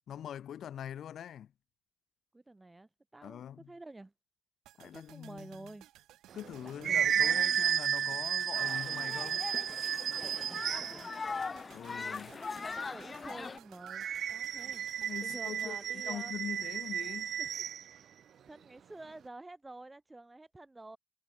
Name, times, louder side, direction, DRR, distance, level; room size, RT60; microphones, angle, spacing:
voice 1, 0.1-1.5 3.2-3.7 4.8-5.7 6.3-9.5 11.7-12.4 14.7-17.4, left 10 dB, 65° left, 0.7 m, -44 dB
voice 2, 2.3-4.1 4.8-5.9 6.8-7.6 10.2-11.1 12.3-14.9 15.2-16.3 17.4-17.5 18.5-21.0, right 2 dB, 15° right, 1.6 m, -50 dB
sound 1, 4.7-16.8 17.1-17.2, right 14 dB, 85° right, 5.1 m, -59 dB
sound 2, 6.3-11.1 13.8-17.8, right 9 dB, 60° right, 0.3 m, -33 dB
sound 3, 8.6-13.6, left 4 dB, 30° left, 0.4 m, -41 dB
cardioid pair, 90°, 0 cm